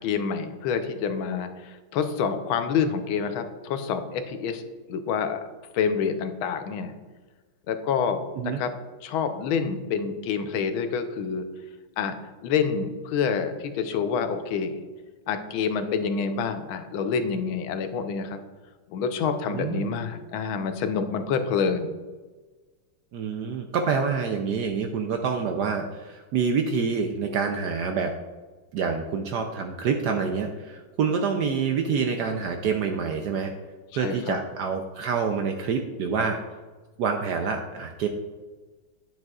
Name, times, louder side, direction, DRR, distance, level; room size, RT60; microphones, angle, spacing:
voice 1, 0.0-4.6 4.9-5.4 5.7-6.9 7.7-8.7 9.0-11.4 12.0-12.2 12.4-14.8 15.3-18.4 18.9-21.9 34.0-34.4, left 6 dB, 90° left, 8 dB, 1.5 m, -27 dB
voice 2, 19.5-19.9 23.1-28.1 28.7-33.5 33.9-36.4 37.0-38.1, right 5 dB, 70° right, 4 dB, 1.0 m, -27 dB
9.9 x 7.6 x 2.4 m, 1.3 s
omnidirectional pair, 2.2 m